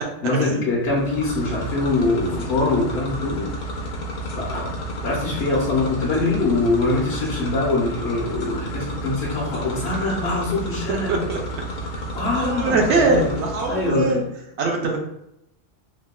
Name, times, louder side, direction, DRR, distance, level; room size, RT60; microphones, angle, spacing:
voice 1, 0.2-3.5 4.4-4.7 5.0-11.2 12.1-13.4 13.7-14.2, left 3 dB, 60° left, -3 dB, 1.0 m, -23 dB
sound 1, 0.8-14.2, right 1 dB, 90° left, 1.0 m, -31 dB
voice 2, 10.9-11.6 12.3-14.2 14.6-15.0, right 3 dB, 70° right, 0 dB, 0.8 m, -22 dB
3.5 x 2.2 x 2.2 m, 0.82 s
omnidirectional pair, 1.3 m